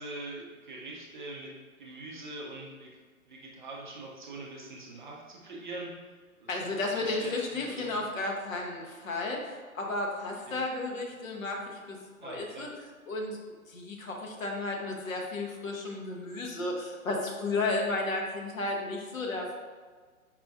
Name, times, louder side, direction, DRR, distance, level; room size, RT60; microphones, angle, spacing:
voice 1, 0.0-1.5 1.8-2.9 3.3-5.9 6.4-6.7 7.0-8.0 10.5-10.6 12.2-12.7, right 2 dB, 35° right, -2 dB, 0.5 m, -43 dB
voice 2, 6.5-12.7 13.1-13.4 13.7-19.5, left 2 dB, 65° left, 0 dB, 0.9 m, -33 dB
4.9 x 2.5 x 2.3 m, 1.5 s
figure-of-eight pair, 125°, 42 cm